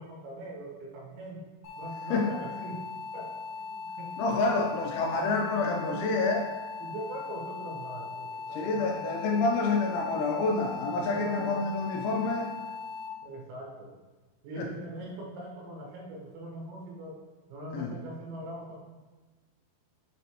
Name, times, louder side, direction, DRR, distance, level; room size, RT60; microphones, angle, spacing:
voice 1, 0.0-1.5 1.7-4.4 6.8-9.0 11.0-11.6 13.2-14.0 14.4-17.2 17.5-18.8, right 1 dB, 70° right, -3 dB, 3.2 m, -42 dB
sound 1, 1.6-13.1, left 4 dB, 65° left, 2.7 m, -40 dB
voice 2, 4.2-6.5 8.6-12.5 14.6-14.7 17.7-17.9, left 3 dB, 85° left, 1 dB, 2.7 m, -28 dB
7.3 x 5.1 x 2.9 m, 1.3 s
omnidirectional pair, 5.8 m